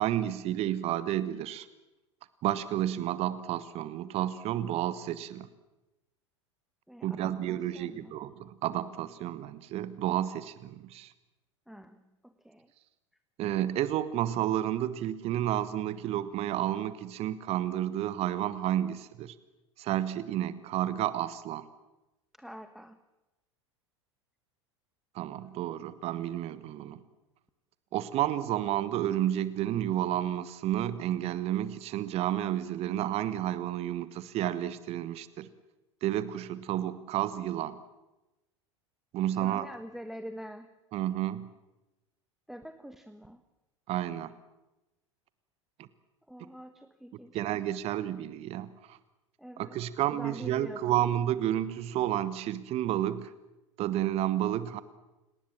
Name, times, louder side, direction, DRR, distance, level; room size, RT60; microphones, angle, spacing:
voice 1, 0.0-1.7 2.4-5.5 7.0-11.1 13.4-19.3 19.8-21.7 25.1-27.0 27.9-35.5 36.0-37.8 39.1-39.7 40.9-41.5 43.9-44.3 45.8-45.9 47.3-49.0 49.6-53.3 53.8-54.8, right 12 dB, 40° right, 15 dB, 1.3 m, -31 dB
voice 2, 6.9-8.2 11.7-12.7 22.4-23.0 39.3-40.7 42.5-43.4 46.3-47.6 49.4-49.8 50.1-51.0, equal, ahead, 10 dB, 1.3 m, -46 dB
29.5 x 19.0 x 7.5 m, 1.0 s
figure-of-eight pair, 80°, 16 cm